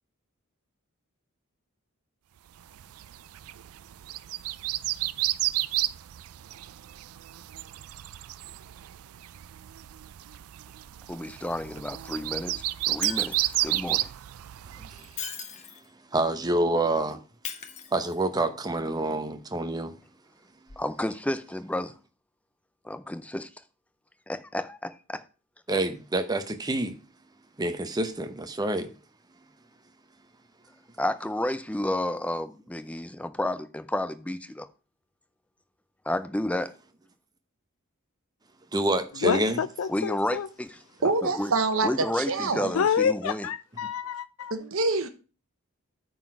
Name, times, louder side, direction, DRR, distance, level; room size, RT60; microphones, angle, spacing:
sound 1, 2.7-15.1, right 16 dB, 90° right, 0.4 m, -32 dB
voice 1, 11.1-14.1 20.8-21.9 22.8-23.5 24.3-25.2 31.0-34.7 36.1-36.7 39.9-41.5 41.8-43.5, left 1 dB, 5° left, 0.5 m, -31 dB
Shatter, 13.0-13.7 14.9-15.9 17.4-18.4 20.7-20.8, left 7 dB, 35° left, 0.8 m, -39 dB
voice 2, 16.1-17.2 17.9-19.9 25.7-27.0 27.6-28.9 38.7-39.6, right 2 dB, 20° right, 0.8 m, -27 dB
voice 3, 39.2-40.5 42.7-44.5, left 7 dB, 75° left, 0.4 m, -28 dB
voice 4, 41.0-42.7 44.5-45.1, right 3 dB, 70° right, 1.0 m, -26 dB
9.1 x 4.0 x 6.0 m
head